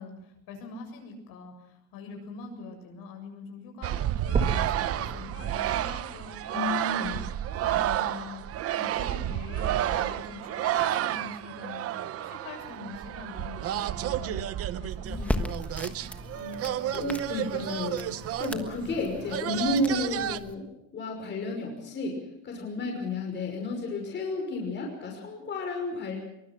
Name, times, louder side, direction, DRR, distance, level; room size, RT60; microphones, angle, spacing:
voice 1, 0.0-7.2 7.5-11.9 12.2-14.5 14.8-15.9 16.3-17.1, left 3 dB, 65° left, 3 dB, 7.5 m, -44 dB
sound 1, 3.8-20.4, right 12 dB, 40° right, 0.8 m, -31 dB
sound 2, 4.3-8.3 8.9-9.0 9.6-9.7 10.0-10.1 10.9-11.0, right 4 dB, 20° right, 2.1 m, -36 dB
voice 2, 6.5-7.1 16.9-18.1 18.4-20.6 20.9-26.2, left 2 dB, 30° left, 1 dB, 5.8 m, -32 dB
sound 3, 15.0-20.5, left 1 dB, 5° left, 1.4 m, -37 dB
23.0 x 23.0 x 6.1 m, 0.84 s
cardioid pair, 165°, 38 cm